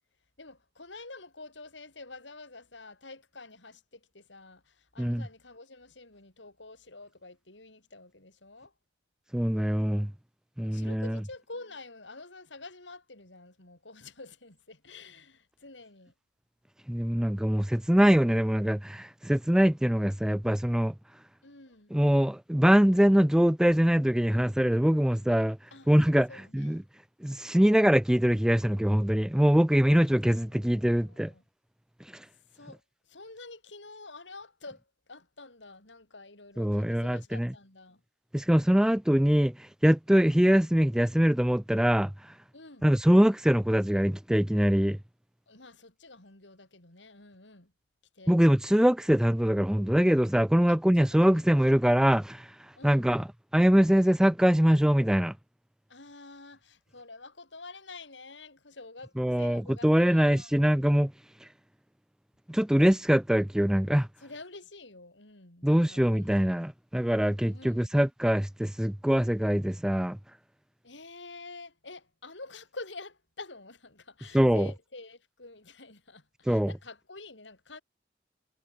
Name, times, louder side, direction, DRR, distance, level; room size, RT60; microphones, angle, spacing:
voice 1, 0.4-8.7 10.6-16.1 21.4-21.9 25.7-25.9 26.3-26.8 30.0-30.2 30.5-31.4 32.3-38.0 40.1-40.4 42.5-42.9 45.5-47.7 48.1-48.4 50.7-51.4 52.8-53.1 55.9-60.6 64.2-66.3 67.5-67.9 70.8-77.8, left 3 dB, 90° left, 6.8 m, -48 dB
voice 2, 9.3-10.1 10.6-11.2 16.9-20.9 21.9-25.6 25.9-26.3 26.5-26.8 27.2-31.3 32.1-32.2 36.6-37.5 38.3-42.3 42.8-45.0 48.3-52.5 52.8-53.3 53.5-55.3 59.2-61.1 61.4-61.5 62.5-64.1 65.6-70.2 74.3-74.7 76.5-76.7, equal, 5° right, 0.4 m, -23 dB
head